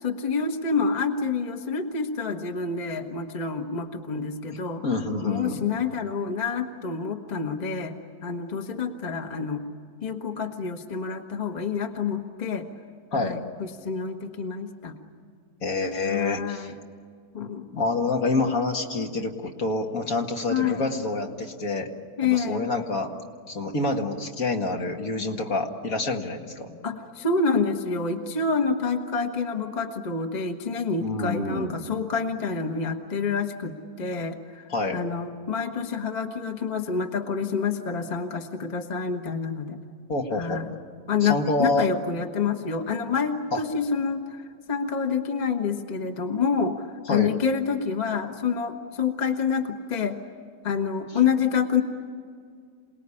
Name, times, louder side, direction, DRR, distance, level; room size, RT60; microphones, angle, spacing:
voice 1, 0.0-4.8 5.2-7.9 8.2-9.6 10.0-12.7 13.2-14.9 16.0-16.8 17.3-17.7 20.5-20.8 22.2-22.6 26.8-34.6 34.9-39.8 40.3-40.7 41.1-44.2 44.7-50.2 50.6-51.8, left 5 dB, 30° left, 5 dB, 1.3 m, -27 dB
voice 2, 4.8-5.6 13.1-13.4 15.6-16.7 17.7-21.9 22.2-23.1 23.5-26.8 31.0-31.7 34.7-35.0 40.1-40.6 41.2-41.9 43.5-43.6 47.1-47.3, left 2 dB, 60° left, 2 dB, 2.3 m, -27 dB
27.5 x 19.5 x 9.9 m, 2.2 s
omnidirectional pair, 1.7 m